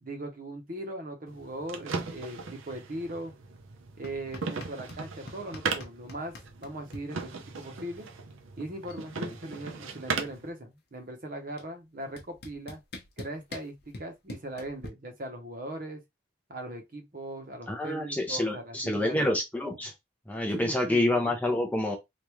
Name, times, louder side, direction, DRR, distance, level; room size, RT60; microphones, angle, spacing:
voice 1, 0.0-3.3 4.0-8.1 8.6-12.8 13.2-16.0 16.5-19.2 20.5-21.1, right 1 dB, 45° right, 0.9 m, -39 dB
sound 1, 1.3-10.5, right 4 dB, 90° right, 0.6 m, -38 dB
sound 2, 4.0-5.0 5.3-7.0 8.3-8.4 8.6-9.1 9.3-10.7 11.6-11.7 12.2-14.9, left 2 dB, 55° left, 0.8 m, -44 dB
voice 2, 17.7-19.9 20.3-22.0, left 1 dB, 10° left, 0.6 m, -27 dB
3.4 x 2.5 x 3.0 m
head